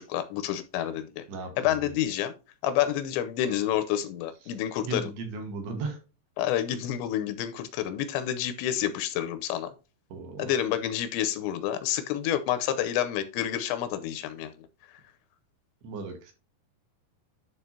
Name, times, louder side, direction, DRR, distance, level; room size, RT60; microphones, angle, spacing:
voice 1, 0.0-1.2 1.6-2.3 2.6-5.0 6.4-9.7 10.4-14.5, left 11 dB, 85° left, 3.0 m, -29 dB
voice 2, 1.3-2.0 4.8-6.0 10.1-10.5 15.8-16.3, right 3 dB, 70° right, 3.4 m, -36 dB
11.5 x 4.6 x 2.8 m
omnidirectional pair, 5.2 m